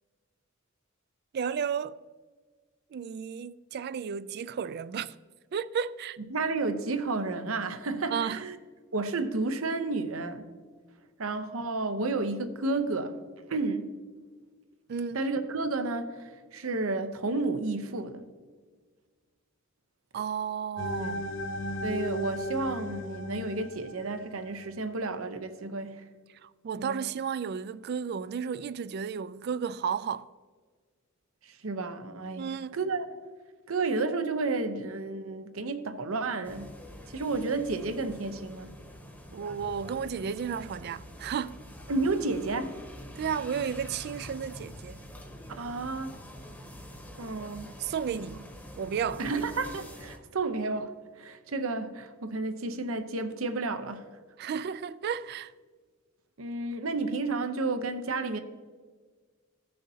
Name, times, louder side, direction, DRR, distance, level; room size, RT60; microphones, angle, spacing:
voice 1, 1.3-2.0 2.9-5.2 5.5-6.2 8.1-8.4 14.9-15.3 20.1-21.3 26.3-30.3 32.4-32.8 39.3-41.6 43.2-45.1 47.8-48.5 48.8-49.3 54.4-55.5, right 7 dB, 50° right, 0.3 m, -33 dB
voice 2, 6.3-8.5 8.9-10.5 11.2-13.2 13.5-13.9 15.1-18.2 21.0-21.3 21.8-26.0 26.8-27.0 31.4-33.1 33.7-36.7 37.1-38.7 41.9-42.8 45.6-46.1 47.2-47.7 49.2-54.1 56.4-58.4, right 3 dB, 75° right, 0.8 m, -31 dB
sound 1, 20.8-24.8, left 1 dB, 60° left, 0.6 m, -36 dB
sound 2, 36.4-50.2, equal, 10° left, 0.9 m, -46 dB
15.5 x 6.5 x 2.8 m
head